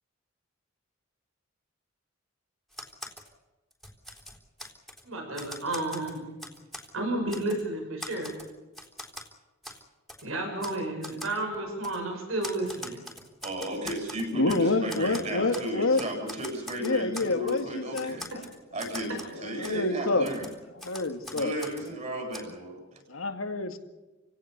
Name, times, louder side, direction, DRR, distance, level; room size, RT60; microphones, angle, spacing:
Typewriter, 2.7-3.3 3.7-5.0 5.3-6.9 7.3-7.6 8.0-9.3 9.6-9.8 10.1-10.2 10.6-10.8 11.0-11.3 11.8-12.0 12.4-14.6 14.9-15.7 15.9-17.6 17.9-19.3 19.6-19.8 20.2-21.9 22.3-22.4, left 1 dB, ahead, 3.6 m, -42 dB
voice 1, 5.0-6.3 6.9-8.3 10.2-13.0, right 2 dB, 85° right, 2 dB, 6.1 m, -32 dB
voice 2, 13.4-18.3 18.7-20.5 21.3-23.0, right 1 dB, 35° right, 3 dB, 7.9 m, -34 dB
voice 3, 14.3-16.0 16.8-18.4 19.0-19.1 19.4-20.3 20.8-21.5 23.1-23.8, left 2 dB, 90° left, 7 dB, 2.2 m, -28 dB
28.5 x 17.5 x 6.9 m, 1.2 s
head